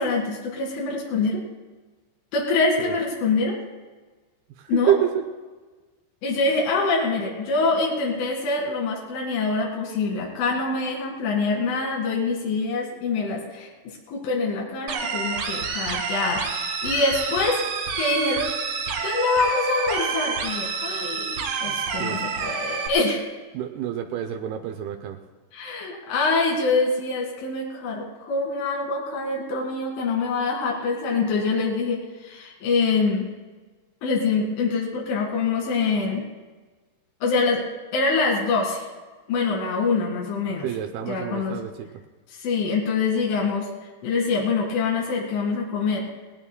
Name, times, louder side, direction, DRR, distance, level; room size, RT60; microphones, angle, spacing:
voice 1, 0.0-1.4 2.3-3.6 4.7-5.0 6.2-17.6 17.9-18.5 19.0-23.3 25.5-33.3 34.0-36.3 37.2-37.6 37.9-38.9 39.3-40.7 41.0-41.6 42.3-43.7 44.0-46.1, left 4 dB, 85° left, -2 dB, 4.7 m, -25 dB
voice 2, 4.7-5.2 21.7-22.2 23.5-25.2 40.6-41.9, right 11 dB, 90° right, 5 dB, 2.2 m, -27 dB
sound 1, 14.9-22.9, right 5 dB, 60° right, 3.1 m, -28 dB
19.5 x 19.0 x 2.2 m, 1.3 s
omnidirectional pair, 5.5 m